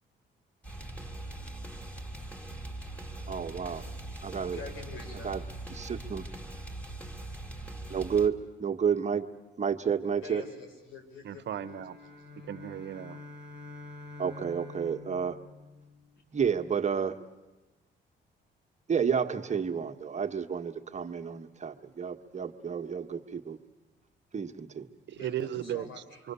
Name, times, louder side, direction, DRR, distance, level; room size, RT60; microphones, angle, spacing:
sound 1, 0.6-8.3, right 2 dB, 5° left, 2.4 m, -41 dB
voice 1, 3.3-3.8 4.2-4.6 5.2-5.4 5.7-6.2 7.9-9.3 9.6-10.4 14.2-15.4 16.3-17.2 18.9-23.6 24.3-24.9, right 7 dB, 35° right, 5 dB, 1.4 m, -30 dB
voice 2, 4.4-5.4 10.2-11.7 25.1-26.2, left 3 dB, 85° left, 3 dB, 5.1 m, -45 dB
voice 3, 11.2-12.0 12.5-13.2 25.1-25.8 26.2-26.3, right 11 dB, 65° right, 14 dB, 0.9 m, -35 dB
sound 2, 11.5-16.2, left 3 dB, 55° left, 6.6 m, -47 dB
27.5 x 24.0 x 7.0 m, 1.1 s
cardioid pair, 90°, 20 cm